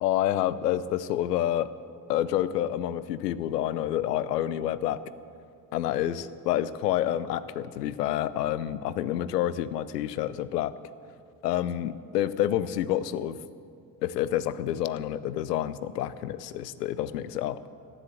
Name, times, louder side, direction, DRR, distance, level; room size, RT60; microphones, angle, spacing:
voice 1, 0.0-1.7 2.1-5.0 5.7-10.7 11.4-13.4 14.0-17.6, left 12 dB, 80° left, 16 dB, 0.6 m, -28 dB
13.5 x 10.0 x 7.7 m, 2.3 s
figure-of-eight pair, 55°, 47 cm